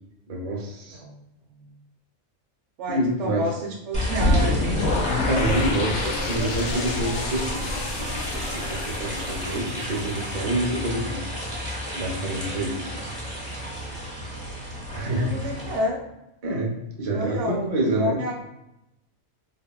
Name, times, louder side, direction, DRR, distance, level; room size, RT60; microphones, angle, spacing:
voice 1, 0.3-1.0 2.9-3.4 5.0-8.1 8.3-11.3 11.9-12.9 14.9-15.3 16.4-16.7 17.0-18.2, right 1 dB, 50° right, -1 dB, 0.4 m, -27 dB
voice 2, 2.8-4.6 15.0-16.0 17.1-18.4, equal, 70° right, 1 dB, 0.8 m, -30 dB
sound 1, 3.9-15.8, left 1 dB, 5° left, 0.6 m, -32 dB
sound 2, 4.2-10.2, left 2 dB, 85° left, 1.0 m, -27 dB
3.6 x 2.1 x 2.2 m, 0.89 s
omnidirectional pair, 1.4 m